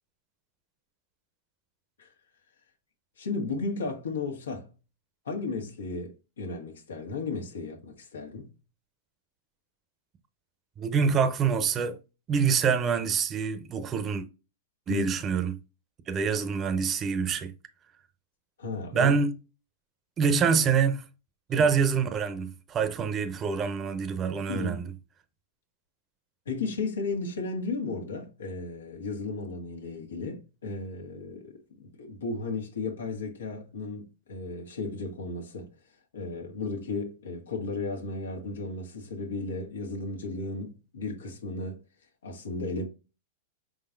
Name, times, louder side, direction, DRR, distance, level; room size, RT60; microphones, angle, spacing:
voice 1, 3.2-4.7 5.2-8.5 14.9-15.2 18.6-19.1 21.5-21.7 24.5-24.8 26.5-35.7 36.1-41.8 42.2-42.8, left 3 dB, 85° left, 1.3 m, -34 dB
voice 2, 10.8-12.0 12.3-14.3 14.9-15.6 16.1-17.5 18.9-19.3 20.2-21.0 21.5-24.8, right 6 dB, 30° right, 0.8 m, -26 dB
5.2 x 3.8 x 2.6 m
hypercardioid pair, 110°, 0 cm